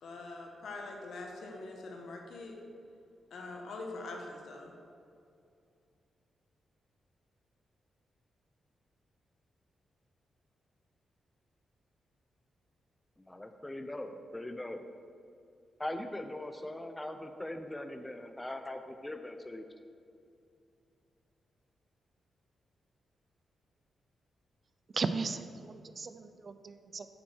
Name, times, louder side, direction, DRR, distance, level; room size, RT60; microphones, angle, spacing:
voice 1, 0.0-2.6 3.3-4.7, left 2 dB, 75° left, 2 dB, 1.3 m, -43 dB
voice 2, 13.2-14.9 15.8-19.7, left 1 dB, 15° left, 7 dB, 0.7 m, -41 dB
voice 3, 24.9-27.1, right 4 dB, 50° right, 10 dB, 0.5 m, -36 dB
8.6 x 4.3 x 6.4 m, 2.5 s
cardioid pair, 65°, 0 cm